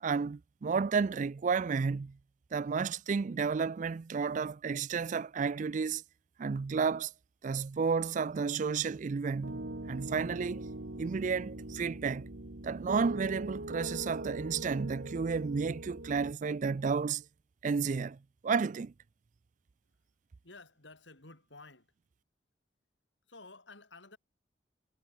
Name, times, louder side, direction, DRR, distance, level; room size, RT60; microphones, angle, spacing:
voice 1, 0.0-2.2 2.5-6.0 6.4-7.1 7.4-10.7 11.0-12.3 12.6-17.2 17.6-18.2 18.4-18.9, right 5 dB, 40° right, 0.4 m, -32 dB
Piano, 9.4-16.3, right 2 dB, 70° right, 1.7 m, -41 dB
voice 2, 20.4-21.9 23.3-24.2, left 3 dB, 75° left, 6.0 m, -53 dB
head